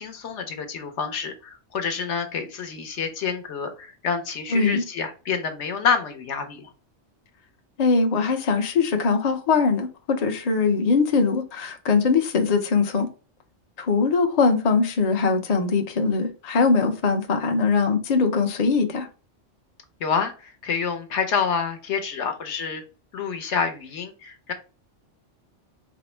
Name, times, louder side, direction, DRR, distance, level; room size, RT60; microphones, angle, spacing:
voice 1, 0.0-6.7 20.0-22.8 23.1-24.5, left 6 dB, 70° left, 1.1 m, -28 dB
voice 2, 4.5-4.8 7.8-13.1 13.8-19.1, left 4 dB, 40° left, 0.6 m, -21 dB
4.2 x 2.0 x 4.3 m
omnidirectional pair, 1.2 m